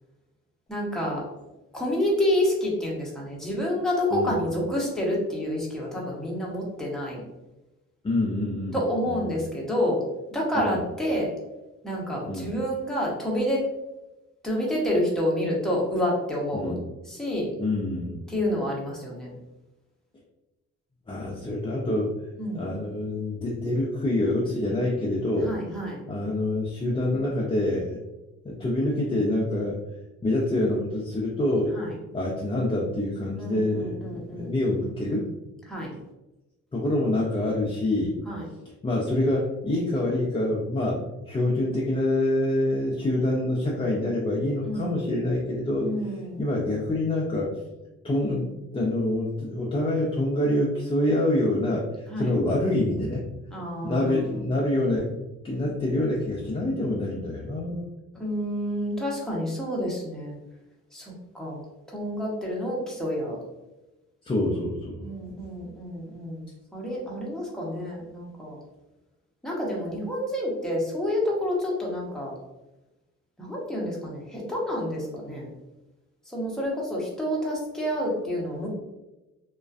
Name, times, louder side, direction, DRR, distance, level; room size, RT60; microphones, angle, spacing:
voice 1, 0.7-1.2 1.7-7.2 8.7-10.0 10.3-11.3 11.8-13.6 14.4-16.8 17.1-17.5 18.3-19.3 22.4-22.7 25.5-26.0 31.7-31.9 33.4-34.5 35.7-36.0 38.3-38.5 44.6-45.0 45.8-46.4 52.1-52.3 53.5-54.4 58.1-60.4 60.9-61.6 61.9-63.4 65.0-66.4 66.7-68.6 69.4-72.3 73.4-75.5 76.3-78.7, left 1 dB, ahead, -4 dB, 0.8 m, -28 dB
voice 2, 8.0-8.8 9.0-9.2 10.6-10.8 12.3-12.5 16.5-16.8 17.6-18.2 21.1-22.2 22.5-25.5 26.1-28.0 28.4-29.8 30.2-31.7 32.1-35.3 36.7-38.2 38.8-45.9 46.4-47.5 48.0-53.2 53.8-55.1 55.4-57.9 64.2-65.0, left 1 dB, 20° left, -5 dB, 0.4 m, -26 dB
2.4 x 2.2 x 2.3 m, 1.0 s
cardioid pair, 90°, 30 cm